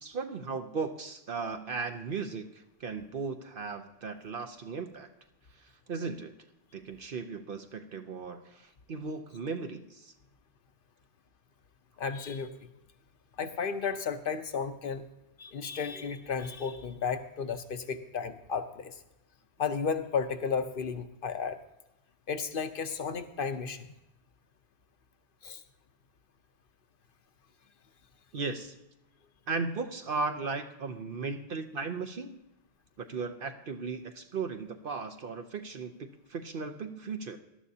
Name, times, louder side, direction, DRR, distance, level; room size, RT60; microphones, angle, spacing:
voice 1, 0.0-5.1 5.6-6.3 6.7-10.1 28.3-28.8 29.5-32.4 33.0-37.4, right 4 dB, 55° right, 6 dB, 0.9 m, -36 dB
voice 2, 12.0-12.5 13.4-15.0 15.4-19.0 19.6-21.6 22.3-23.9 25.4-25.6, left 5 dB, 55° left, 9 dB, 0.9 m, -33 dB
18.5 x 12.0 x 2.8 m, 0.90 s
omnidirectional pair, 1.1 m